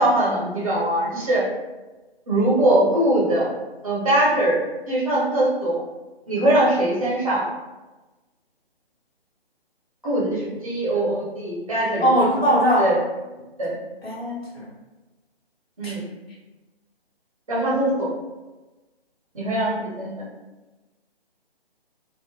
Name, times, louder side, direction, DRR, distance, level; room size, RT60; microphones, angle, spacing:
voice 1, 0.0-1.4 2.3-3.5 3.8-4.6 4.9-5.8 6.3-7.4 10.0-12.1 12.8-13.0 13.6-13.7 15.8-16.1 17.5-18.1 19.3-20.1, right 1 dB, 35° right, -6 dB, 0.6 m, -21 dB
voice 2, 12.0-12.9 14.0-14.7 15.8-15.9, equal, 70° left, -4 dB, 1.0 m, -20 dB
2.1 x 2.0 x 2.8 m, 1.1 s
figure-of-eight pair, 145°, 32 cm